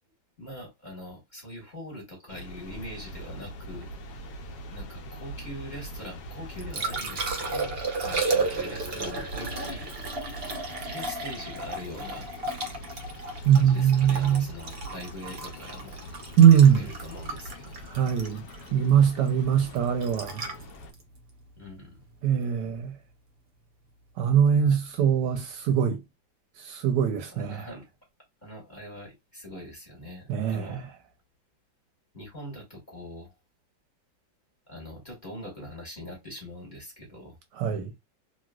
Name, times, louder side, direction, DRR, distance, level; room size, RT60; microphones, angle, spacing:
voice 1, 0.4-3.9 4.7-9.9 10.9-12.3 13.5-16.0 16.5-17.8 19.4-19.8 21.6-22.1 24.6-24.8 27.3-27.9 28.4-30.8 32.1-33.3 34.7-37.4, equal, 25° left, 1.3 m, -42 dB
sound 1, 2.3-20.9, equal, 65° left, 1.2 m, -42 dB
Liquid, 6.3-22.4 25.2-25.4, right 3 dB, 55° right, 0.6 m, -34 dB
voice 2, 13.4-14.4 16.4-16.9 17.9-18.4 18.7-20.4 22.2-22.9 24.2-26.0 26.6-27.7 30.3-30.9 37.6-37.9, right 8 dB, 75° right, 1.1 m, -21 dB
3.1 x 2.9 x 2.2 m
omnidirectional pair, 2.0 m